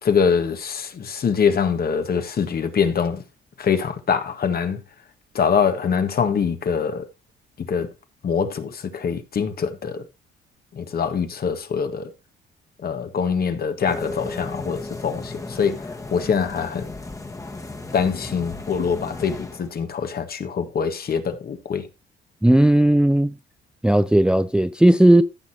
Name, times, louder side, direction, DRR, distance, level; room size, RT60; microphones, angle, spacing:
voice 1, 0.0-3.2 3.6-4.8 5.3-7.0 7.7-7.9 8.2-10.0 10.7-12.1 12.8-15.8 16.1-16.9 17.9-21.9, left 6 dB, 50° left, 1.5 m, -24 dB
sound 1, 13.9-19.8, left 2 dB, 15° left, 1.4 m, -35 dB
voice 2, 22.4-23.3 23.8-25.2, right 1 dB, 5° right, 0.5 m, -15 dB
14.5 x 6.2 x 2.8 m
cardioid pair, 90°, 20 cm